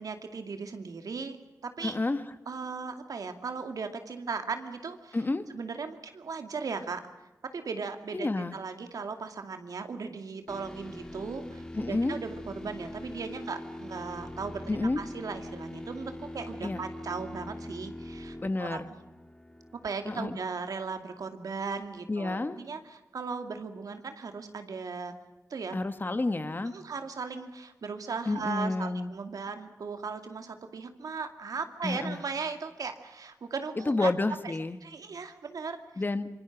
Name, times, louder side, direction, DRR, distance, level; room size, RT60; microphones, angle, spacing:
voice 1, 0.0-1.4 1.6-2.0 2.5-5.2 5.5-7.1 7.5-18.8 19.8-25.1 25.5-25.8 26.7-34.1 34.4-34.5 34.8-35.8, right 5 dB, 85° right, 7 dB, 2.3 m, -37 dB
voice 2, 1.8-2.2 5.1-5.4 8.1-8.6 11.7-12.2 14.7-15.0 16.6-16.8 18.4-18.9 20.0-20.4 22.1-22.6 25.7-26.7 28.3-29.1 31.8-32.2 33.8-34.8 36.0-36.3, left 2 dB, 35° left, 10 dB, 1.6 m, -30 dB
sound 1, 10.5-20.4, left 1 dB, 15° left, 3.4 m, -43 dB
26.5 x 24.0 x 6.1 m, 1.0 s
wide cardioid pair, 85°, 6 cm